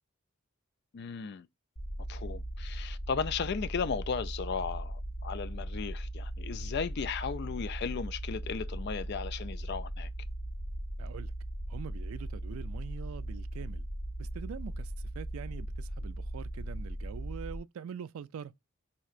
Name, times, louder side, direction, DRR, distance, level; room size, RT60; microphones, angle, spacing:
voice 1, 0.9-1.5 2.1-10.1, left 6 dB, 50° left, 0.3 m, -35 dB
sound 1, 1.8-17.6, right 1 dB, 80° left, 1.5 m, -38 dB
voice 2, 11.0-11.3 11.7-13.9 14.2-18.6, right 8 dB, 80° right, 0.3 m, -44 dB
4.2 x 2.8 x 2.4 m
head